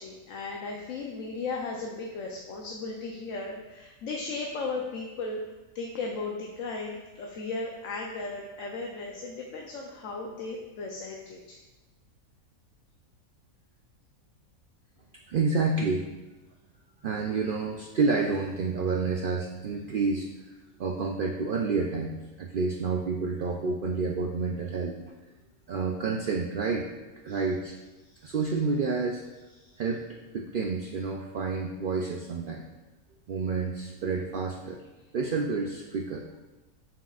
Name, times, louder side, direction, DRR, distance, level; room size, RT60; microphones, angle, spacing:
voice 1, 0.0-5.4 5.7-11.6 27.3-27.4 28.0-28.3 29.6-29.8, left 3 dB, 65° left, 0 dB, 1.0 m, -36 dB
voice 2, 15.3-16.1 17.0-20.3 20.8-25.0 25.7-26.9 27.2-27.8 28.2-29.2 29.8-32.7 33.3-34.8 35.1-36.3, right 4 dB, 85° right, 1 dB, 0.4 m, -29 dB
7.4 x 6.5 x 2.4 m, 1.1 s
omnidirectional pair, 1.5 m